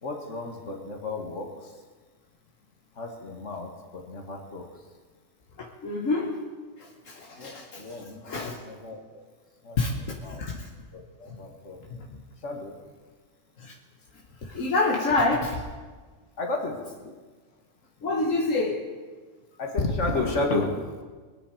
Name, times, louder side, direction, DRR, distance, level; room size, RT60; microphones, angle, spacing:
voice 1, 0.0-1.7 3.0-4.6 7.4-7.5 7.8-8.2 8.6-9.2 9.6-9.8 10.2-10.4 10.9-11.8 12.4-12.7 16.4-16.8 19.6-20.7, left 2 dB, 70° left, 2 dB, 2.2 m, -31 dB
voice 2, 5.6-6.4 6.8-8.6 9.8-9.9 10.3-10.6 11.9-12.2 13.6-13.7 14.5-15.6 18.0-18.8, left 3 dB, 85° left, 0 dB, 1.8 m, -27 dB
21.5 x 9.5 x 5.0 m, 1.4 s
omnidirectional pair, 1.3 m